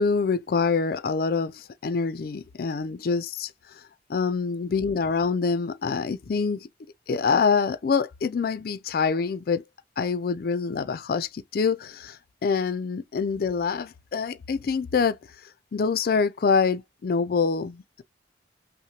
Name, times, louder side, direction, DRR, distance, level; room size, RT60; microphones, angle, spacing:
voice 1, 0.0-3.8 4.1-6.7 7.1-9.6 10.0-15.2 15.7-18.0, left 5 dB, 55° left, 0.4 m, -25 dB
5.6 x 2.1 x 2.8 m
head